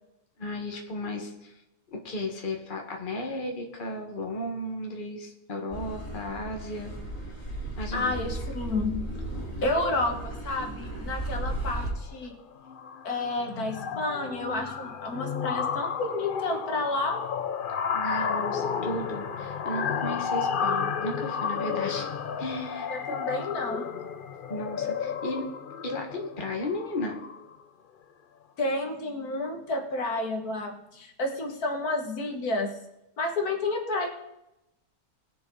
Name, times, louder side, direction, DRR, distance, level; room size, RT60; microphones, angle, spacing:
voice 1, 0.4-1.6 1.9-6.9 7.8-8.4 17.9-22.1 22.4-23.2 24.5-25.5 25.8-27.2, left 1 dB, 35° left, 2 dB, 1.6 m, -34 dB
Car passing by / Accelerating revving vroom, 5.7-11.9, right 1 dB, 10° left, 3.5 m, -35 dB
voice 2, 7.9-9.0 9.6-12.3 13.0-17.2 22.9-23.9 28.6-32.8 33.2-34.1, left 2 dB, 75° left, 3 dB, 2.0 m, -30 dB
sound 1, 11.5-11.8 12.1-12.4 12.7-27.6, left 6 dB, 50° left, 0.6 m, -32 dB
20.0 x 6.9 x 4.0 m, 0.88 s
omnidirectional pair, 1.6 m